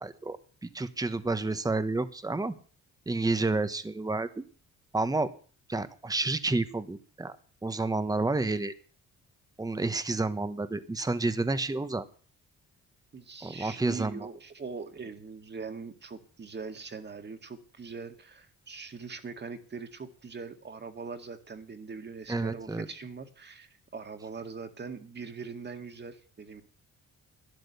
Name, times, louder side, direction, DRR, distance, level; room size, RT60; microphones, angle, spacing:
voice 1, 0.0-2.5 3.1-4.4 4.9-5.3 5.7-7.4 7.6-8.7 9.6-12.1 13.4-14.3 22.3-22.9, right 3 dB, 10° right, 12 dB, 1.2 m, -30 dB
voice 2, 13.1-26.6, right 5 dB, 35° right, 7 dB, 2.1 m, -42 dB
12.5 x 10.5 x 6.9 m, 0.41 s
cardioid pair, 90°, 30 cm